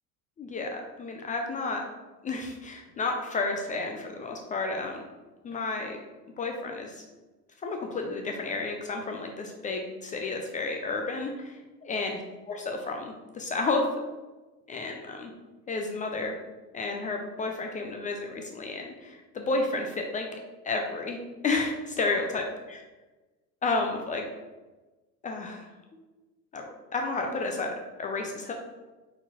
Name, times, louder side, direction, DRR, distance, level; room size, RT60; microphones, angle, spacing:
voice 1, 0.4-1.8 2.2-5.0 5.4-6.0 6.4-7.0 7.6-12.2 12.5-13.9 14.7-15.3 15.7-16.3 16.7-20.3 20.6-21.2 21.4-22.4 23.6-24.3 25.2-25.7 26.5-28.5, left 3 dB, 20° left, 2 dB, 0.3 m, -31 dB
4.4 x 4.1 x 2.9 m, 1.2 s
hypercardioid pair, 80°, 49 cm